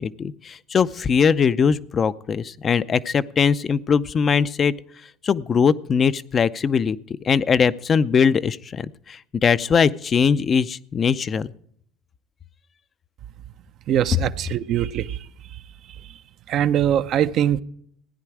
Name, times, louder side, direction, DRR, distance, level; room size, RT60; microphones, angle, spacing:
voice 1, 0.0-4.7 5.2-7.0 7.2-11.5, left 6 dB, 40° left, 0.5 m, -21 dB
voice 2, 13.9-15.2 16.5-17.6, right 10 dB, 55° right, 0.6 m, -22 dB
15.5 x 9.9 x 4.8 m
hypercardioid pair, 75°, 0 cm